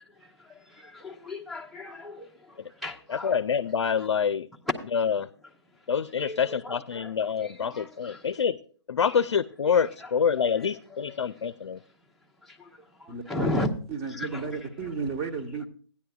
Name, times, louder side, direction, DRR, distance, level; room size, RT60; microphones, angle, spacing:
voice 1, 0.0-3.4 4.7-4.8 6.2-7.1 7.4-8.3 9.0-9.2 9.6-10.1 10.6-11.5 12.4-13.7 14.1-14.5, left 1 dB, ahead, 0.8 m, -36 dB
voice 2, 3.1-4.5 4.9-5.3 5.9-8.6 8.9-11.8, left 7 dB, 70° left, 0.5 m, -26 dB
voice 3, 13.1-13.5 13.9-15.7, right 5 dB, 25° right, 1.4 m, -33 dB
15.5 x 10.0 x 2.3 m
figure-of-eight pair, 140°, 15 cm